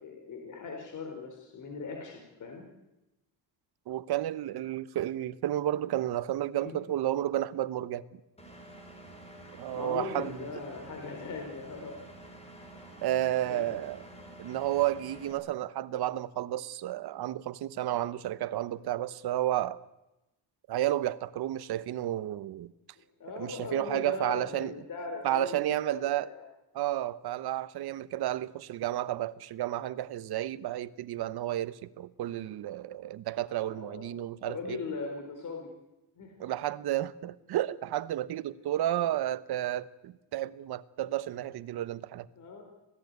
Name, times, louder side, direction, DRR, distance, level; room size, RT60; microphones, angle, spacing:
voice 1, 0.0-2.6 6.6-6.7 9.2-12.0 13.4-13.8 23.0-26.5 33.6-34.1 34.4-35.7 36.2-36.3 42.4-42.6, left 4 dB, 45° left, 4.3 m, -40 dB
voice 2, 3.9-8.0 9.6-10.4 13.0-14.0 14.4-19.8 20.7-22.7 23.4-24.7 25.2-26.3 26.7-34.8 36.4-42.3, right 13 dB, 65° right, 1.1 m, -32 dB
Engine, 8.4-15.3, right 1 dB, 15° left, 5.4 m, -49 dB
26.0 x 17.5 x 9.5 m
cardioid pair, 160°, 41 cm